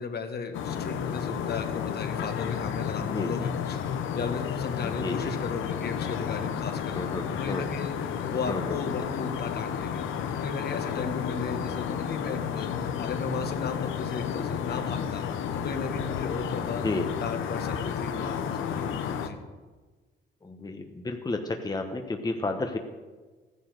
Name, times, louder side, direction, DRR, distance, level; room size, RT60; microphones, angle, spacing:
voice 1, 0.0-7.0 7.3-10.0 10.3-15.2 15.5-16.8 17.2-19.4, left 5 dB, 55° left, 5 dB, 1.7 m, -35 dB
sound 1, 0.5-19.3, left 8 dB, 85° left, 1.1 m, -32 dB
voice 2, 4.8-5.3 6.9-7.6 8.5-8.7 16.8-17.1 20.4-22.8, left 2 dB, 20° left, 5 dB, 1.2 m, -32 dB
14.0 x 10.0 x 6.6 m, 1.3 s
cardioid pair, 90°, 20 cm